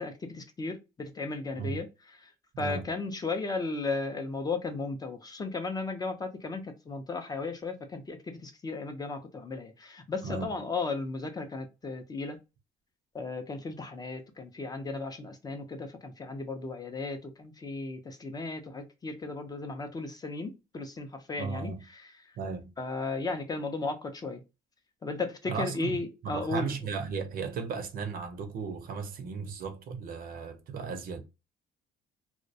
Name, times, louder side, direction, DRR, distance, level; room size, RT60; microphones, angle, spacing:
voice 1, 0.0-1.9 2.6-12.4 13.1-21.7 22.8-24.4 25.0-26.7, left 3 dB, 25° left, 0.4 m, -35 dB
voice 2, 2.5-2.9 10.2-10.5 21.4-21.8 22.4-22.7 25.5-31.2, right 5 dB, 60° right, 0.6 m, -35 dB
2.2 x 2.1 x 2.6 m
cardioid pair, 110°, 17 cm